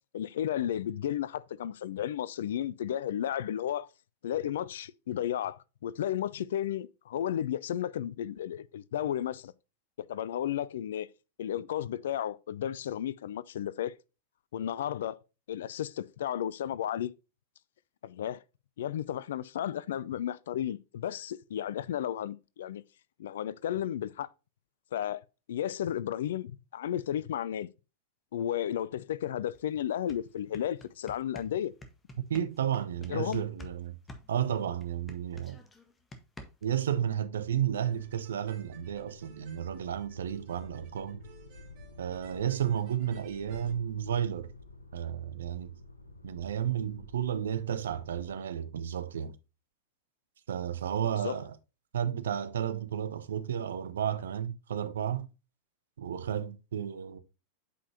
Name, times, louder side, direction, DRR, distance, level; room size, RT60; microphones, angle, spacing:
voice 1, 0.1-3.9 4.2-9.5 10.0-11.1 11.4-13.9 14.5-15.2 15.5-17.1 18.0-18.4 18.8-22.8 23.2-24.3 24.9-25.2 25.5-27.7 28.3-31.7 33.1-33.4 51.2-51.4, left 10 dB, 60° left, 0.4 m, -33 dB
sound 1, 29.5-29.6 29.9-33.8 34.1-36.8, left 1 dB, 15° left, 1.4 m, -48 dB
voice 2, 32.3-33.9 34.3-35.6 36.6-41.2 42.0-44.5 44.9-45.7 46.2-49.3 50.5-51.6 51.9-55.3 56.0-57.2, right 9 dB, 65° right, 0.7 m, -32 dB
sound 2, 37.6-48.3, left 3 dB, 80° left, 0.8 m, -51 dB
sound 3, 37.8-43.7, right 7 dB, 40° right, 3.3 m, -60 dB
8.3 x 5.4 x 2.8 m
figure-of-eight pair, 90°, 0 cm